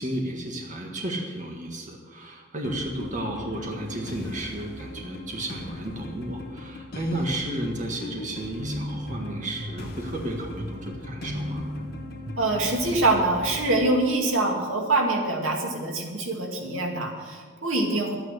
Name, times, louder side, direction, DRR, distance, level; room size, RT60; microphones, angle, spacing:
voice 1, 0.0-11.6, right 1 dB, 40° right, 1 dB, 1.6 m, -33 dB
sound 1, 2.6-14.1, left 2 dB, 50° left, 1.5 m, -40 dB
sound 2, 8.6-13.9, equal, 65° right, 1.5 m, -37 dB
voice 2, 12.4-18.2, right 2 dB, 90° right, 1 dB, 2.2 m, -24 dB
12.0 x 9.3 x 6.6 m, 1.5 s
head